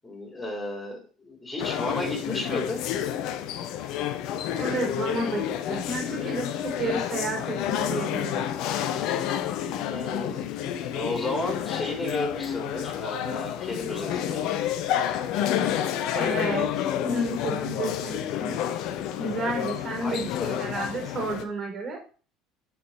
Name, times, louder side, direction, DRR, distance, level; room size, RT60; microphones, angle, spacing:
voice 1, 0.0-2.8 9.9-10.4 10.9-14.4 20.0-20.7, left 2 dB, 15° left, 0 dB, 4.0 m, -33 dB
sound 1, 1.6-21.4, left 10 dB, 60° left, 0.8 m, -29 dB
voice 2, 4.6-8.4 16.1-18.5 19.2-22.0, right 2 dB, 40° right, 1 dB, 4.8 m, -31 dB
8.3 x 5.2 x 4.6 m, 0.38 s
hypercardioid pair, 65°, 0 cm